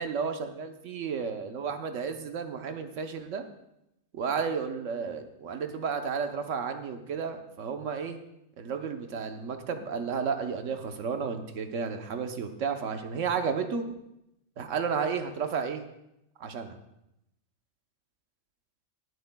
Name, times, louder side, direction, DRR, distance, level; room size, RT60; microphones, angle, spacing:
voice 1, 0.0-3.4 4.1-8.2 8.6-13.8 14.6-15.8 16.4-16.8, right 6 dB, 65° right, 7 dB, 1.2 m, -32 dB
21.5 x 8.0 x 2.2 m, 0.85 s
omnidirectional pair, 1.5 m